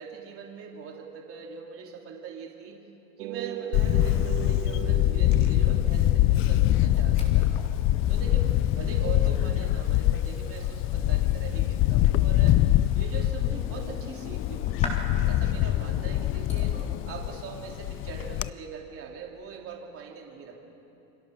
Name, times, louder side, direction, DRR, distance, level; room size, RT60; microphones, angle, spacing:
voice 1, 0.0-2.8 3.2-7.5 8.1-12.6 12.9-14.8 15.2-16.8 17.0-20.6, right 6 dB, 30° right, 0 dB, 3.4 m, -41 dB
sound 1, 3.2-6.7, right 14 dB, 85° right, 1.1 m, -38 dB
Camera, 3.7-18.5, left 14 dB, 30° left, 0.4 m, -24 dB
sound 2, 6.9-17.0, left 1 dB, 15° left, 3.8 m, -44 dB
28.5 x 24.0 x 6.6 m, 3.0 s
supercardioid pair, 145°, 41 cm